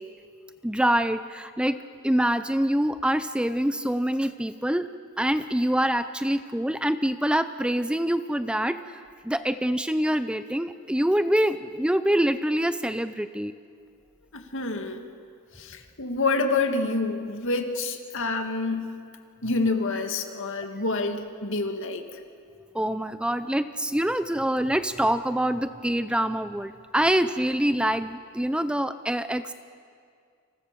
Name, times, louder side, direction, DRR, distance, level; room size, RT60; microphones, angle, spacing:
voice 1, 0.6-4.9 5.2-13.5 22.7-29.5, right 1 dB, 5° right, 11 dB, 0.6 m, -25 dB
voice 2, 14.3-15.1 15.6-19.0 19.4-22.2, left 3 dB, 60° left, 5 dB, 2.3 m, -28 dB
29.5 x 27.0 x 6.9 m, 2.2 s
head